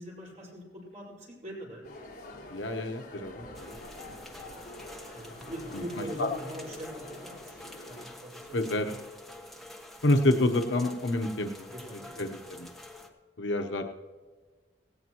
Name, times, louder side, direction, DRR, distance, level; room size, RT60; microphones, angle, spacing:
voice 1, 0.0-1.8 5.1-7.6 7.9-9.1 11.7-12.2, equal, 40° right, -4 dB, 5.0 m, -42 dB
sound 1, 1.8-8.1, left 1 dB, 55° left, 4.1 m, -47 dB
voice 2, 2.5-3.7 6.2-6.3 8.5-8.9 10.0-11.7 12.2-12.3 12.6-12.7 13.4-13.8, left 2 dB, 85° left, 4 dB, 0.9 m, -27 dB
sound 2, 3.5-13.1, left 1 dB, ahead, 1.1 m, -48 dB
17.5 x 17.0 x 3.0 m, 1.4 s
head